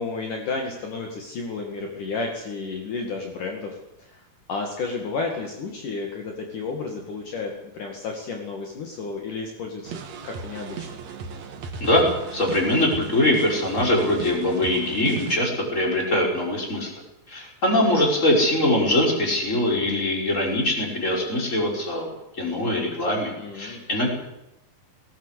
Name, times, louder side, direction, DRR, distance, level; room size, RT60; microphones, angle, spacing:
voice 1, 0.0-4.2 4.5-11.0 23.4-23.8, left 4 dB, 60° left, 2 dB, 3.6 m, -32 dB
sound 1, 9.8-15.4, right 5 dB, 55° right, 2.6 m, -36 dB
voice 2, 11.8-16.9 17.3-24.1, left 1 dB, 20° left, 0 dB, 5.6 m, -22 dB
19.0 x 18.0 x 8.3 m, 0.88 s
omnidirectional pair, 4.3 m